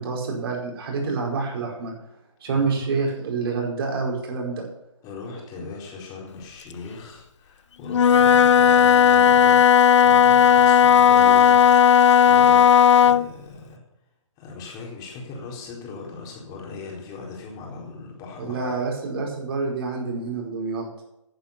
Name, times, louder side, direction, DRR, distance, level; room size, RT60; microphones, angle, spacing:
voice 1, 0.0-1.9 2.4-4.7 18.4-20.9, right 4 dB, 50° right, 0 dB, 4.9 m, -27 dB
voice 2, 2.5-2.9 5.0-13.8 14.4-18.7, left 4 dB, 20° left, -2 dB, 4.3 m, -39 dB
Wind instrument woodwind instrument, 7.9-13.3, left 8 dB, 65° left, 0.4 m, -15 dB
10.5 x 10.5 x 7.0 m, 0.85 s
figure-of-eight pair, 140°, 17 cm